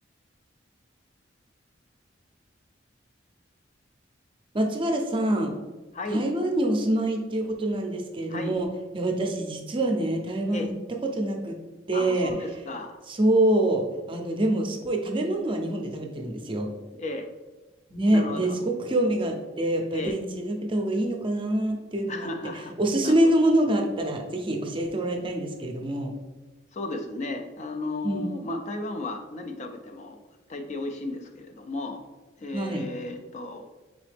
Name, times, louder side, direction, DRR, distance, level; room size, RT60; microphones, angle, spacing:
voice 1, 4.5-5.5 6.1-8.7 8.9-11.6 11.9-12.3 13.1-16.7 17.9-22.3 22.5-26.1 28.0-28.3 32.5-32.8, right 1 dB, 25° right, 3 dB, 0.5 m, -25 dB
voice 2, 5.9-6.3 8.3-8.5 10.5-10.7 11.9-13.0 17.0-17.3 18.1-18.5 19.9-20.1 22.1-22.7 23.0-23.1 26.7-30.2 30.5-32.0 32.4-33.7, left 2 dB, 40° left, 5 dB, 0.4 m, -34 dB
4.0 x 3.8 x 3.3 m, 1.2 s
head